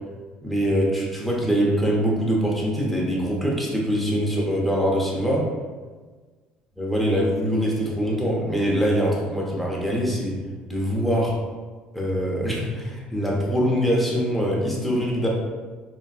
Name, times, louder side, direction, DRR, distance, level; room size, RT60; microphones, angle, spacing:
voice 1, 0.4-5.5 6.8-10.4 10.7-11.3 11.9-15.3, equal, ahead, -4 dB, 0.9 m, -23 dB
3.8 x 2.3 x 2.4 m, 1.4 s
supercardioid pair, 90°, 3 cm